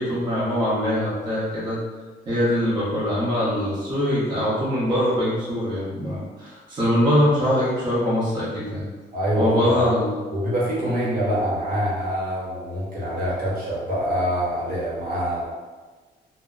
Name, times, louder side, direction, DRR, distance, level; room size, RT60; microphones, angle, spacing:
voice 1, 0.0-1.8 2.3-8.8 9.4-10.1 10.8-11.2, equal, 25° right, -9 dB, 0.7 m, -23 dB
voice 2, 9.1-9.9 10.3-15.4, equal, 55° right, -7 dB, 1.0 m, -25 dB
2.1 x 2.1 x 3.6 m, 1.3 s
cardioid pair, 150°, 17 cm